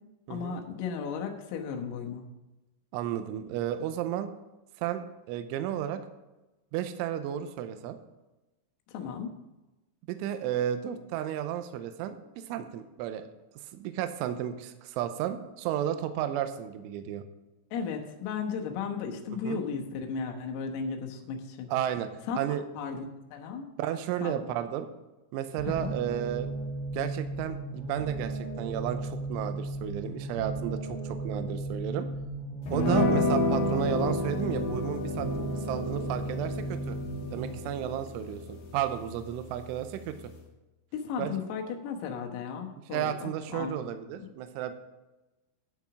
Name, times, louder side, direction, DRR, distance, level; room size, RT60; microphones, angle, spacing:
voice 1, 0.3-2.2 8.9-9.4 17.7-21.7 22.3-22.4 22.8-23.1 23.3-23.7 24.2-24.4 25.7-25.9 32.9-33.3 40.9-43.8 44.2-44.3, left 6 dB, 85° left, 3 dB, 3.9 m, -35 dB
voice 2, 2.9-4.3 4.8-6.0 6.7-8.0 10.1-13.2 13.7-17.2 19.4-19.6 21.7-22.1 22.4-22.6 23.8-24.9 25.3-26.5 26.9-32.1 32.7-37.0 37.3-40.1 41.2-41.3 42.9-44.7, right 10 dB, 85° right, 9 dB, 2.9 m, -33 dB
sound 1, 25.6-37.6, right 2 dB, 55° right, 1.5 m, -36 dB
sound 2, 32.7-40.4, left 1 dB, 60° left, 3.1 m, -31 dB
11.5 x 6.0 x 6.0 m, 1.0 s
omnidirectional pair, 5.9 m